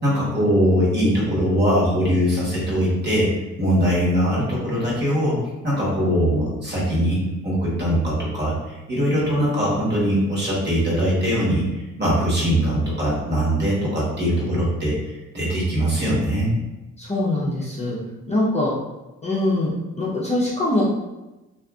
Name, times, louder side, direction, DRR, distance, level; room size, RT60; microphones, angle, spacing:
voice 1, 0.0-3.3 3.6-5.4 5.6-7.2 7.4-11.6 12.0-16.5, equal, 35° right, -6 dB, 1.2 m, -21 dB
voice 2, 17.0-18.0 18.3-18.7 19.2-20.9, left 1 dB, 20° left, -6 dB, 0.5 m, -23 dB
2.5 x 2.4 x 2.3 m, 1.1 s
cardioid pair, 90°, 30 cm